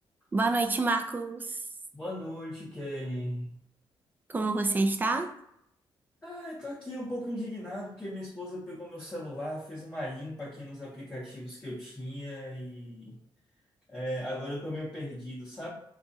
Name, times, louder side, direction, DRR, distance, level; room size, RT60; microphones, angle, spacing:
voice 1, 0.3-1.7 4.3-5.3, right 3 dB, 20° right, 5 dB, 0.4 m, -27 dB
voice 2, 1.9-3.6 6.2-13.2 13.9-15.7, equal, 15° left, -5 dB, 0.8 m, -37 dB
4.1 x 2.3 x 2.6 m, 0.73 s
cardioid pair, 130°, 9 cm